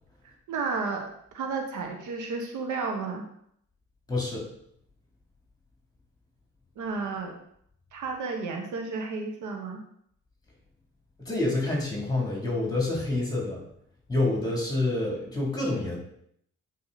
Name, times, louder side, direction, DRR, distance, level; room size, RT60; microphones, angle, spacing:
voice 1, 0.5-3.3 6.8-7.4 7.9-9.8, right 4 dB, 75° right, 3 dB, 1.3 m, -32 dB
voice 2, 4.1-4.4 11.2-13.6 14.1-16.0, left 2 dB, 15° left, -2 dB, 3.1 m, -27 dB
8.3 x 4.9 x 4.1 m, 0.69 s
cardioid pair, 90°, 30 cm